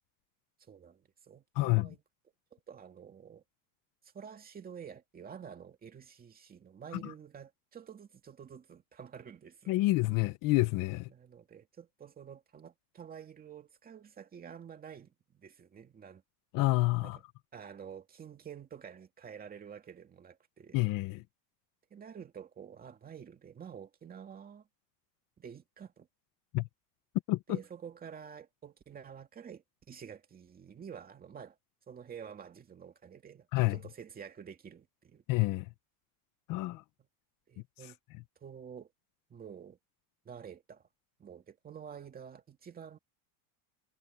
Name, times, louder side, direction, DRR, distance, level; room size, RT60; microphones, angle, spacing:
voice 1, 0.7-2.0 2.5-3.4 4.1-9.7 11.1-16.2 17.0-17.1 17.5-20.8 21.9-24.7 25.4-26.1 27.5-31.6 31.9-35.2 37.5-38.0 38.4-38.9 39.3-39.8 40.2-40.8 41.2-43.0, right 7 dB, 20° right, 2.4 m, -49 dB
voice 2, 1.5-1.9 7.0-7.1 9.7-11.1 16.5-17.2 20.7-21.2 26.5-26.6 27.3-27.6 33.5-33.8 35.3-35.7 36.5-36.8, left 20 dB, 40° left, 1.1 m, -28 dB
supercardioid pair, 165°, 49 cm